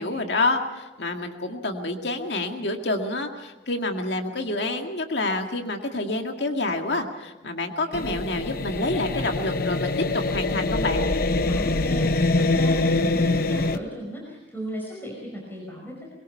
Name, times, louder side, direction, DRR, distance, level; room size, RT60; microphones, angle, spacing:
voice 1, 0.0-11.0, left 2 dB, 70° left, 4 dB, 2.1 m, -28 dB
sound 1, 7.9-13.8, left 2 dB, 55° left, 0.8 m, -24 dB
voice 2, 11.5-16.1, equal, 10° left, -3 dB, 5.3 m, -36 dB
22.5 x 22.0 x 5.6 m, 1.2 s
head